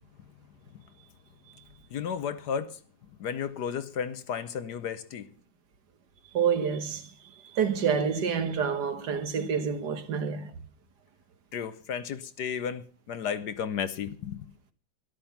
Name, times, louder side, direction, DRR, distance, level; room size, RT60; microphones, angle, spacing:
voice 1, 1.9-2.8 3.2-5.2 11.5-14.5, left 7 dB, 65° left, 1.3 m, -33 dB
voice 2, 6.3-7.1 7.5-10.5, right 6 dB, 60° right, 1.7 m, -28 dB
13.0 x 12.0 x 5.8 m
omnidirectional pair, 2.1 m